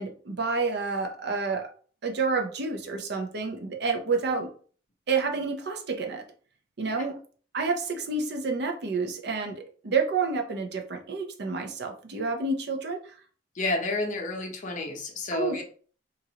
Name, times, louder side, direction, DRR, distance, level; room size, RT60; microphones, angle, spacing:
voice 1, 0.0-1.7 2.0-4.5 5.1-6.2 6.8-7.2 7.5-13.1 15.3-15.6, right 4 dB, 65° right, 4 dB, 0.6 m, -29 dB
voice 2, 13.5-15.6, left 2 dB, 45° left, 1 dB, 0.7 m, -30 dB
3.0 x 2.5 x 2.8 m, 0.44 s
head